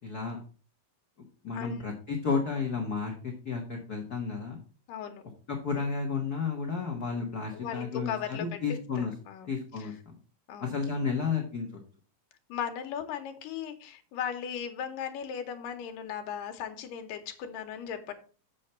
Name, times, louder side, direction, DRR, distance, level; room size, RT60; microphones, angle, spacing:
voice 1, 0.0-0.4 1.4-4.6 5.5-9.1 9.5-10.1 10.6-11.7, left 5 dB, 70° left, 2 dB, 0.9 m, -32 dB
voice 2, 4.9-5.2 7.5-8.6 9.0-9.9 10.5-10.9 12.5-18.1, left 8 dB, 85° left, 6 dB, 2.5 m, -37 dB
7.3 x 6.9 x 4.3 m, 0.39 s
omnidirectional pair, 3.8 m